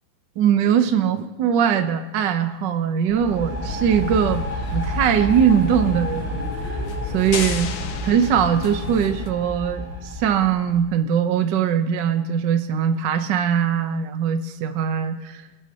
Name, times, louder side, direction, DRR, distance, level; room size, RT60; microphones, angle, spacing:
voice 1, 0.4-4.4 4.7-6.8 7.1-7.7 8.0-15.4, right 8 dB, 65° right, 7 dB, 1.3 m, -21 dB
sound 1, 3.1-10.8, equal, 5° right, 3.0 m, -30 dB
sound 2, 3.6-9.3, left 6 dB, 65° left, 1.5 m, -35 dB
sound 3, 7.3-9.1, left 7 dB, 90° left, 0.7 m, -32 dB
24.5 x 11.5 x 2.9 m, 1.1 s
omnidirectional pair, 2.4 m